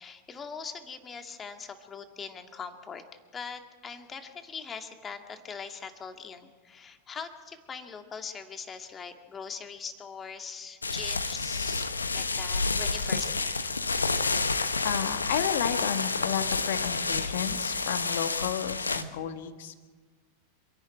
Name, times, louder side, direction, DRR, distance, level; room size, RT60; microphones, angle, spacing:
voice 1, 0.0-3.0 3.3-11.9 12.1-13.7, left 6 dB, 25° left, 6 dB, 2.1 m, -41 dB
sound 1, 10.8-19.0, left 4 dB, 85° left, 1.1 m, -29 dB
voice 2, 14.8-19.7, left 9 dB, 60° left, 9 dB, 1.7 m, -32 dB
26.5 x 11.5 x 9.0 m, 1.4 s
figure-of-eight pair, 90°, 0 cm